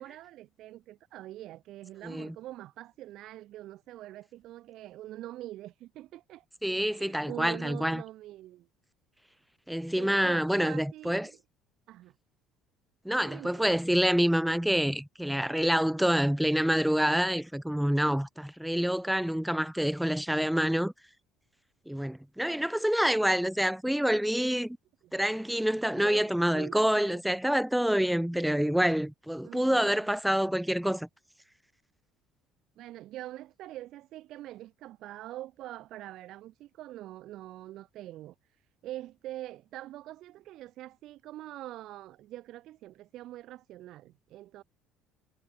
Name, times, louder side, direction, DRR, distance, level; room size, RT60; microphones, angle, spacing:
voice 1, 0.0-6.5 6.7-8.7 10.0-11.4 11.9-12.2 13.2-13.8 25.0-25.1 25.9-27.2 29.4-30.1 32.8-44.6, right 14 dB, 60° right, 1.6 m, -44 dB
voice 2, 6.6-8.0 9.7-11.3 13.1-20.9 21.9-24.8 25.1-31.1, equal, ahead, 0.5 m, -27 dB
cardioid pair, 135°, 0 cm